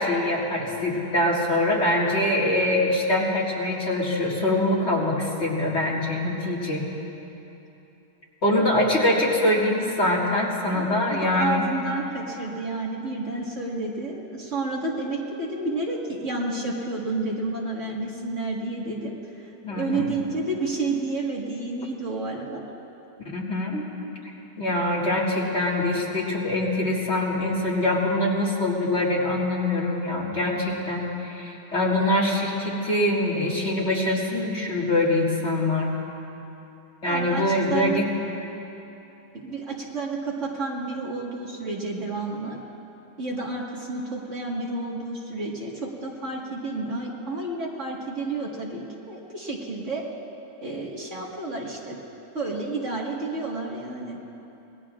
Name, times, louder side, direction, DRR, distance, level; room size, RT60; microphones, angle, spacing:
voice 1, 0.0-6.8 8.4-11.7 19.6-20.2 23.3-23.9 24.6-35.9 37.0-38.1, left 1 dB, 40° left, -4 dB, 2.3 m, -24 dB
voice 2, 8.5-8.9 10.7-19.2 19.7-22.6 37.0-38.0 39.4-42.6 43.2-50.0 50.6-52.0 52.3-54.2, right 2 dB, 45° right, -3 dB, 2.0 m, -30 dB
26.0 x 20.5 x 2.5 m, 3.0 s
omnidirectional pair, 1.8 m